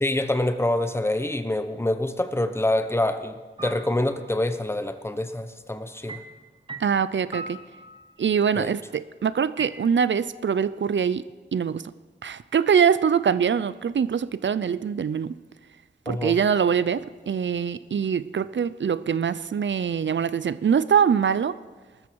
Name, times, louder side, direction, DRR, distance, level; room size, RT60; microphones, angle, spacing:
voice 1, 0.0-6.2 8.6-8.7 16.1-16.4, left 1 dB, 15° left, 1.0 m, -26 dB
sound 1, 3.6-4.3 6.1-8.4 9.6-9.7, right 3 dB, 25° right, 1.1 m, -40 dB
voice 2, 6.8-7.6 8.2-11.9 12.2-15.4 16.1-21.6, right 7 dB, 80° right, 0.5 m, -23 dB
20.0 x 13.0 x 4.7 m
wide cardioid pair, 85°, 19 cm